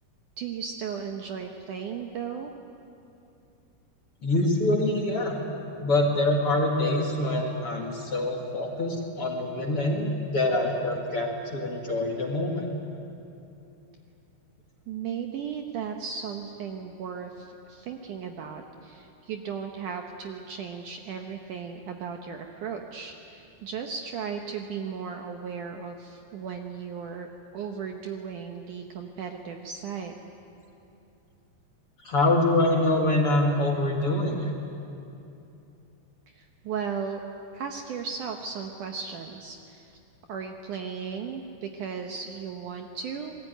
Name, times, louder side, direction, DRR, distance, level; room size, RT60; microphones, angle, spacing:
voice 1, 0.4-2.5 14.9-27.3 27.5-30.1 36.3-37.2 37.5-40.0 40.3-43.3, right 6 dB, 70° right, 3 dB, 2.1 m, -36 dB
voice 2, 4.2-5.4 5.8-12.7 32.0-34.5, left 2 dB, 40° left, 0 dB, 2.3 m, -25 dB
26.5 x 20.5 x 9.2 m, 2.8 s
omnidirectional pair, 4.7 m